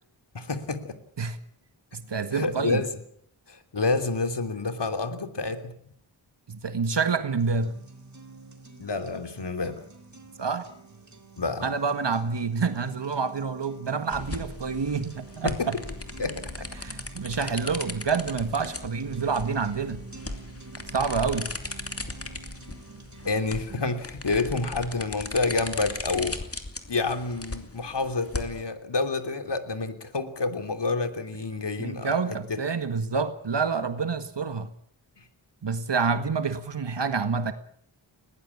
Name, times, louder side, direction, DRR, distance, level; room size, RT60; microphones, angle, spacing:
voice 1, 0.3-1.0 2.3-2.9 3.5-5.7 8.8-9.8 11.4-11.7 15.4-15.7 16.2-16.7 23.2-26.4 26.9-32.2 32.5-32.6 35.2-35.3, left 3 dB, 55° left, 3.2 m, -28 dB
voice 2, 1.9-2.8 6.5-7.8 10.4-10.7 11.6-15.8 16.8-20.0 20.9-21.5 31.8-34.7 35.6-37.5, right 5 dB, 60° right, 1.8 m, -28 dB
sound 1, 7.4-23.4, right 3 dB, 35° right, 3.8 m, -47 dB
sound 2, 14.1-28.6, left 2 dB, 30° left, 2.7 m, -38 dB
21.0 x 18.5 x 8.6 m
wide cardioid pair, 65°, 48 cm